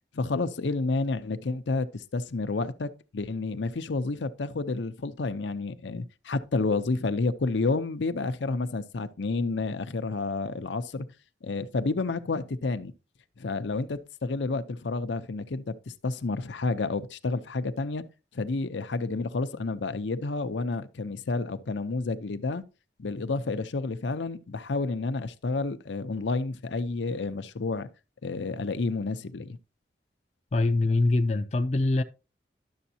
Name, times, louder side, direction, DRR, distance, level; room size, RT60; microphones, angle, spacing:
voice 1, 0.1-11.1 11.4-12.9 13.4-18.0 18.3-22.6 23.0-27.9 28.2-29.6, left 3 dB, 85° left, 0.6 m, -30 dB
voice 2, 30.5-32.0, left 2 dB, 35° left, 0.4 m, -24 dB
11.5 x 7.0 x 2.8 m
head